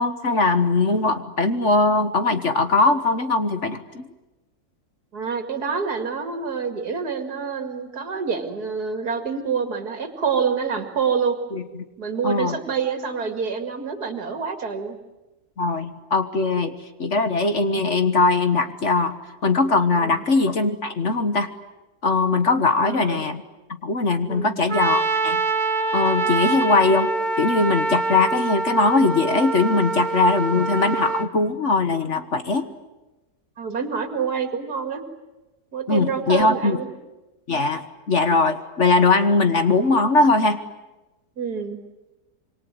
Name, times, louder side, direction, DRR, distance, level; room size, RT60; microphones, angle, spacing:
voice 1, 0.0-4.1 11.5-11.6 12.2-12.6 15.6-19.1 19.4-21.5 22.0-23.4 23.8-25.4 25.9-27.1 27.4-32.7 35.9-36.8 37.5-40.6, left 3 dB, 50° left, 9 dB, 1.7 m, -20 dB
voice 2, 5.1-11.4 12.0-15.0 20.0-20.2 22.8-23.2 24.3-24.6 26.2-26.4 30.5-30.6 33.6-35.0 35.7-36.9 41.4-41.8, right 6 dB, 85° right, 6 dB, 2.8 m, -27 dB
Trumpet, 24.7-31.3, right 3 dB, 30° right, 1.2 m, -25 dB
27.0 x 23.5 x 9.3 m, 1.1 s
omnidirectional pair, 1.6 m